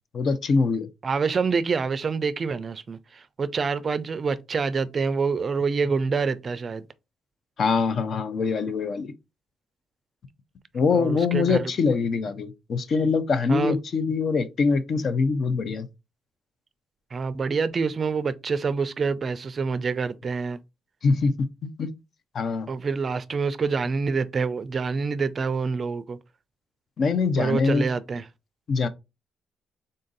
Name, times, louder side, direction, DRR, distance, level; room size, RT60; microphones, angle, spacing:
voice 1, 0.1-0.9 7.6-9.1 10.7-15.9 21.0-21.3 21.6-21.9 22.3-22.7 27.0-27.9 28.7-28.9, left 4 dB, 55° left, 0.6 m, -23 dB
voice 2, 1.0-6.9 10.9-11.7 13.5-13.8 17.1-20.6 22.7-26.2 27.4-28.2, right 5 dB, 40° right, 0.4 m, -26 dB
3.8 x 2.6 x 3.8 m
cardioid pair, 90°, 0 cm